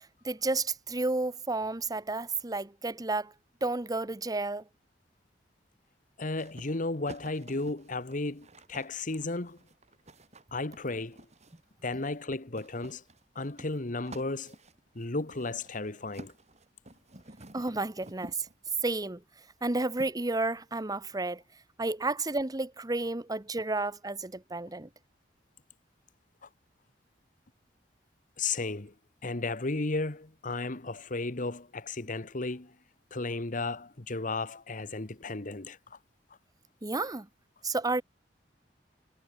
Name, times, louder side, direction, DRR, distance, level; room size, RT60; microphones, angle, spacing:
voice 1, 0.0-3.3 3.6-4.6 17.5-18.3 18.8-19.2 19.6-21.4 21.8-24.9 36.8-37.3 37.6-38.0, right 2 dB, 20° right, 1.1 m, -31 dB
voice 2, 6.2-9.6 10.5-11.2 11.8-13.0 13.3-14.5 14.9-16.3 28.4-28.9 29.2-32.7 33.1-36.0, left 3 dB, 50° left, 1.4 m, -34 dB
sound 1, 6.4-11.7 12.6-18.9 20.0-20.1, right 1 dB, 40° right, 6.3 m, -51 dB
head